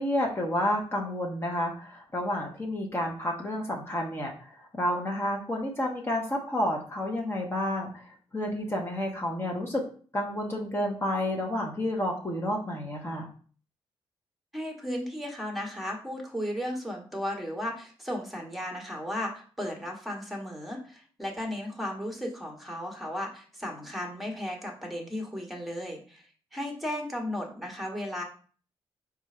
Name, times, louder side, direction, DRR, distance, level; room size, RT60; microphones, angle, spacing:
voice 1, 0.0-8.1 8.3-9.8 10.1-13.3, left 1 dB, 25° left, -1 dB, 1.1 m, -30 dB
voice 2, 14.5-26.2 26.5-28.2, left 1 dB, ahead, 1 dB, 1.4 m, -35 dB
4.3 x 2.5 x 4.3 m, 0.42 s
cardioid pair, 80°, 10 cm